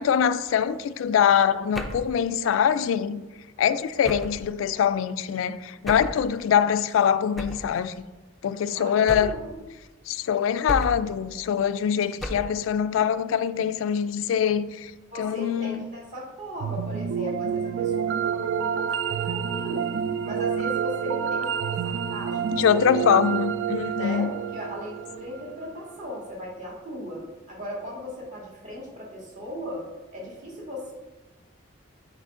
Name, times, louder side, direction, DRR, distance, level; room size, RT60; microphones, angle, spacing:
voice 1, 0.0-3.2 3.6-8.1 8.4-9.3 10.1-14.9 15.2-15.9 22.5-24.3, left 8 dB, 85° left, 0.3 m, -23 dB
sound 1, 1.7-2.2 4.0-4.5 5.9-6.2 7.4-7.7 9.1-9.5 10.7-11.2 12.2-12.6, equal, ahead, 0.4 m, -33 dB
voice 2, 8.7-9.6 15.1-19.9 20.2-23.0 24.0-29.8 30.1-30.9, left 1 dB, 40° right, 1.8 m, -37 dB
sound 2, 16.6-25.7, right 7 dB, 75° right, 0.3 m, -28 dB
7.3 x 4.2 x 3.7 m
head